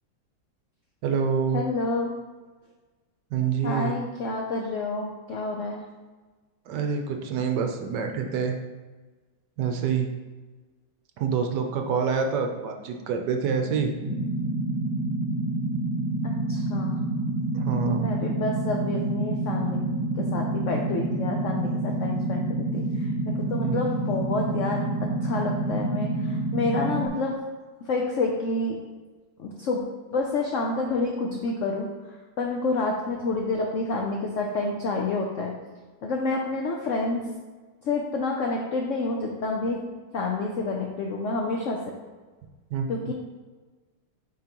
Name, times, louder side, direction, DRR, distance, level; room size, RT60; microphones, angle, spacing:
voice 1, 1.0-1.6 3.3-3.9 6.7-8.6 9.6-10.1 11.2-13.9 17.5-18.1 23.6-23.8 42.7-43.1, right 6 dB, 70° right, 4 dB, 1.2 m, -26 dB
voice 2, 1.5-2.2 3.6-5.8 13.7-13.9 16.2-17.0 18.0-19.8 20.1-27.4 27.9-28.8 29.4-29.8 30.1-35.5 36.0-37.2 37.8-39.8 40.1-41.8 42.9-43.1, left 3 dB, 75° left, 0 dB, 0.7 m, -29 dB
sound 1, 14.0-27.1, right 2 dB, 35° right, 0.9 m, -28 dB
8.6 x 3.7 x 2.9 m, 1.3 s
omnidirectional pair, 2.0 m